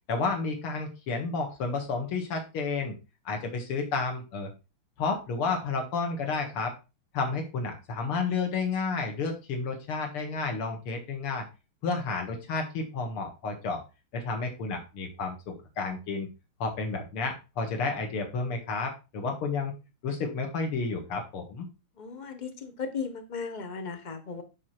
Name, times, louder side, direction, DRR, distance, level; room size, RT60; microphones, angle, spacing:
voice 1, 0.1-2.9 3.3-4.5 5.0-6.7 7.1-11.4 11.8-13.8 14.1-15.4 15.8-16.3 16.6-19.7 20.0-21.7, left 4 dB, 85° left, 3 dB, 2.6 m, -31 dB
voice 2, 22.0-24.4, left 5 dB, 30° left, 6 dB, 0.8 m, -36 dB
8.5 x 5.0 x 4.4 m, 0.29 s
omnidirectional pair, 2.4 m